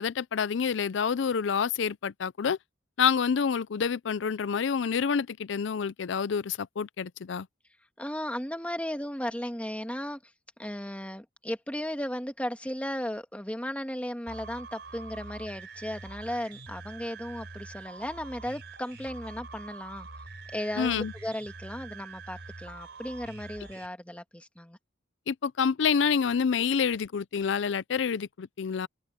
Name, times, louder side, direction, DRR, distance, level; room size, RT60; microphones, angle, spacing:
voice 1, 0.0-2.6 3.0-7.5 20.8-21.1 25.3-28.9, left 6 dB, 65° left, 0.5 m, -28 dB
voice 2, 8.0-10.3 10.6-20.1 20.5-24.8, left 1 dB, 5° left, 1.6 m, -35 dB
sound 1, 14.3-23.9, right 3 dB, 60° right, 5.4 m, -45 dB
head